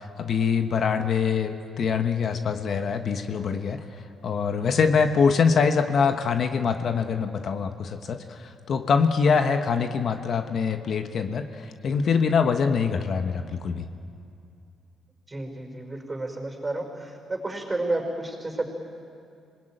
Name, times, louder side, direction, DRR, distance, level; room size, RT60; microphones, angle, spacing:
voice 1, 0.0-3.8 4.2-13.8, left 6 dB, 55° left, 7 dB, 1.2 m, -24 dB
voice 2, 15.3-18.6, right 2 dB, 20° right, 3 dB, 5.3 m, -31 dB
26.5 x 20.5 x 9.1 m, 2.5 s
cardioid pair, 95°, 0 cm